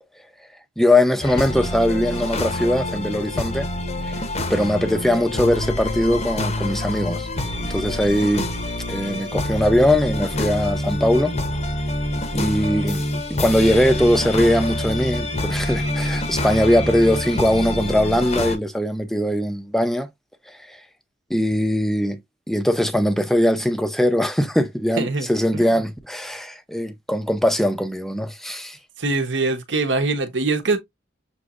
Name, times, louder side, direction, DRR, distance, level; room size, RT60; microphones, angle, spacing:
voice 1, 0.8-3.7 4.0-4.2 4.5-7.3 7.6-8.5 8.9-11.3 12.3-13.0 13.3-20.1 20.7-20.8 21.3-22.2 22.5-28.8, left 1 dB, ahead, 0.5 m, -20 dB
sound 1, 1.2-18.6, left 1 dB, 35° left, 0.8 m, -26 dB
voice 2, 29.0-30.8, right 3 dB, 70° right, 1.0 m, -22 dB
6.3 x 3.0 x 2.5 m
head